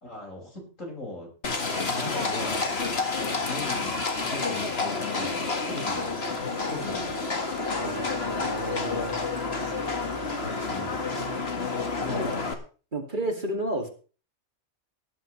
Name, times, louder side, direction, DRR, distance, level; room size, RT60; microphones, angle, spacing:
voice 1, 0.0-1.3 1.8-2.7 3.4-4.0 4.3-7.3 10.6-11.1 11.7-12.4, left 2 dB, 65° left, -1 dB, 6.4 m, -39 dB
Livestock farm animals working animals, 1.4-12.5, left 4 dB, 45° left, 2.0 m, -29 dB
Wind instrument woodwind instrument, 6.4-11.5, right 2 dB, 10° left, 1.9 m, -42 dB
voice 2, 7.7-9.2 12.1-12.3 12.9-13.9, right 1 dB, 35° right, 3 dB, 2.5 m, -32 dB
18.0 x 11.0 x 3.3 m, 0.37 s
omnidirectional pair, 1.4 m